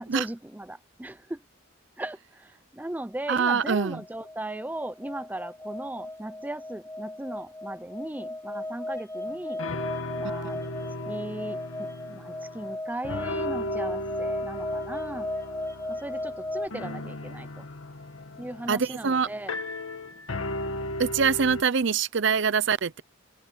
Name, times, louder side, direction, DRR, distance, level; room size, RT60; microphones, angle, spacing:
voice 1, 0.0-1.4 2.0-9.6 10.2-10.7 11.1-15.3 15.9-17.7 18.4-19.5, right 1 dB, 10° right, 0.5 m, -37 dB
sound 1, 3.3-16.7, left 1 dB, 15° left, 1.2 m, -36 dB
voice 2, 3.3-4.0 10.4-10.7 18.7-19.3 21.0-23.0, right 6 dB, 60° right, 0.6 m, -24 dB
sound 2, 9.3-9.4 9.6-12.8 13.0-21.6, left 1 dB, 80° left, 1.8 m, -36 dB
open air
head